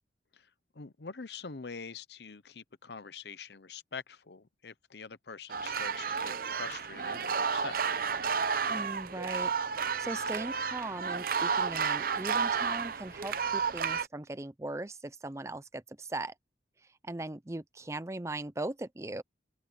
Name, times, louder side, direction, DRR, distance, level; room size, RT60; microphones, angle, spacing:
voice 1, 0.7-7.8, left 5 dB, 70° left, 0.8 m, -45 dB
sound 1, 5.5-14.1, right 6 dB, 55° right, 0.7 m, -32 dB
voice 2, 8.7-16.3 17.0-19.2, right 2 dB, 15° right, 0.6 m, -39 dB
open air
head